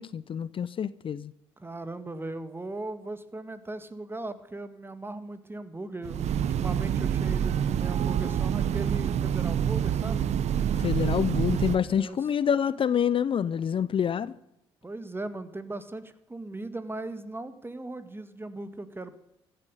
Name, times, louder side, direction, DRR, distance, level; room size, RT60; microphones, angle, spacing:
voice 1, 0.0-1.3 10.7-14.3, left 8 dB, 45° left, 0.6 m, -27 dB
voice 2, 1.6-10.3 11.8-12.2 14.8-19.2, right 2 dB, 15° right, 1.9 m, -38 dB
Train, 6.0-11.8, right 9 dB, 60° right, 0.9 m, -27 dB
15.0 x 7.8 x 10.0 m
hypercardioid pair, 55°, 13 cm